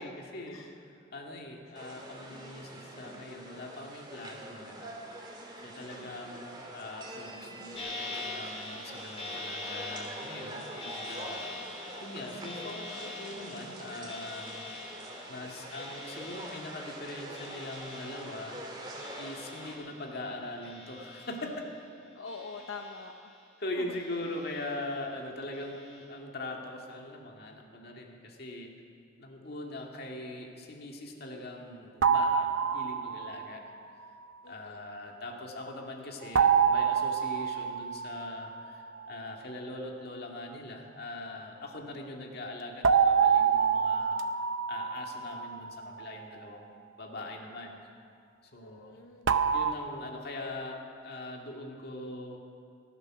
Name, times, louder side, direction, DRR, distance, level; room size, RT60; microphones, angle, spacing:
voice 1, 0.0-4.9 5.6-14.7 15.3-21.5 23.6-28.7 29.2-33.6 34.5-44.2 44.7-46.7 47.0-47.8 48.5-48.9 49.5-52.4, left 2 dB, 50° left, 1 dB, 2.1 m, -41 dB
sound 1, 1.8-19.8, right 1 dB, 20° right, 2.0 m, -45 dB
voice 2, 5.7-6.2 22.1-23.3 34.4-34.8 48.6-49.3, left 4 dB, 80° left, 3 dB, 0.8 m, -45 dB
sound 2, 7.7-20.3 20.6-21.8 22.2-23.5 23.9-24.9 25.5-26.0, left 2 dB, 30° left, 2.7 m, -44 dB
sound 3, 32.0-33.5 36.3-38.8 42.8-46.0 49.3-49.7, right 6 dB, 70° right, 0.7 m, -26 dB
19.5 x 12.0 x 6.1 m, 2.4 s
head